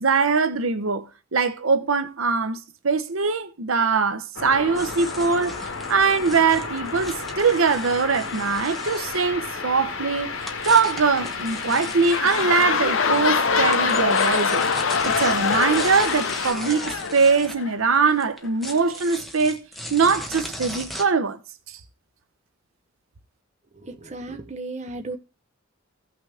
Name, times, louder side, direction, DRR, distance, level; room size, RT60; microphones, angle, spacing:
voice 1, 0.0-1.1 1.3-10.3 10.6-14.7 15.0-19.6 19.9-21.4, right 5 dB, 80° right, 0.8 m, -22 dB
sound 1, 4.4-16.5, left 5 dB, 85° left, 1.5 m, -33 dB
sound 2, 4.7-9.3 10.3-12.7 13.1-21.0, equal, ahead, 1.0 m, -37 dB
sound 3, 11.6-18.0 18.7-18.8, left 5 dB, 70° left, 0.7 m, -24 dB
voice 2, 23.7-25.2, right 2 dB, 35° right, 0.8 m, -35 dB
15.5 x 5.9 x 3.4 m
head